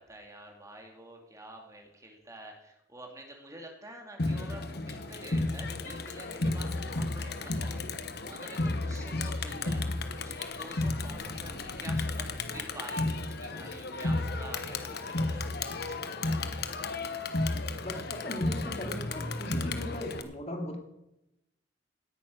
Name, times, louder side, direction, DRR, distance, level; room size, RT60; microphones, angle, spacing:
voice 1, 0.0-15.5 15.9-16.0, right 1 dB, 20° right, 2 dB, 2.3 m, -48 dB
Crowd, 4.2-20.2, left 2 dB, 60° left, 1.2 m, -33 dB
voice 2, 17.8-20.8, left 1 dB, 35° left, 3 dB, 2.5 m, -38 dB
17.0 x 9.3 x 6.3 m, 0.88 s
head